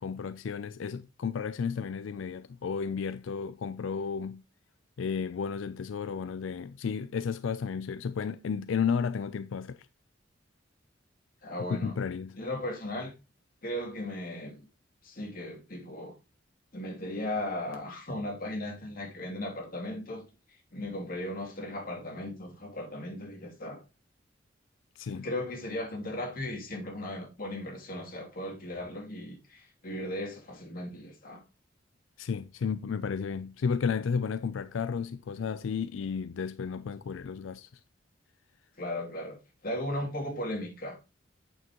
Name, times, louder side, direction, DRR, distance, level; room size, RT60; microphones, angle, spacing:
voice 1, 0.0-4.4 5.0-9.9 11.7-12.4 25.0-25.3 32.2-37.8, left 6 dB, 90° left, 0.4 m, -33 dB
voice 2, 11.4-11.9 12.4-13.1 13.6-14.6 15.0-16.1 16.7-23.8 25.1-31.4 38.8-41.0, left 1 dB, 50° left, 2.8 m, -37 dB
8.4 x 7.0 x 3.0 m
head